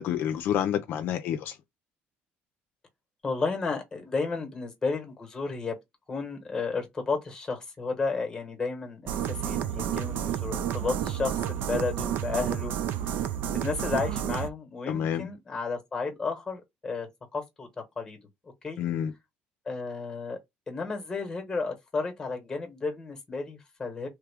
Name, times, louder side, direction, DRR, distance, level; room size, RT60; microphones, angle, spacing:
voice 1, 0.0-1.6 14.9-15.3 18.8-19.1, left 9 dB, 65° left, 0.5 m, -28 dB
voice 2, 3.2-5.8 6.1-12.7 13.0-17.7 18.0-18.2 18.6-18.8 19.7-20.4 20.7-24.1, left 4 dB, 15° left, 1.1 m, -32 dB
sound 1, 9.1-14.5, right 10 dB, 70° right, 0.4 m, -30 dB
3.2 x 2.3 x 3.4 m
cardioid pair, 155°, 4 cm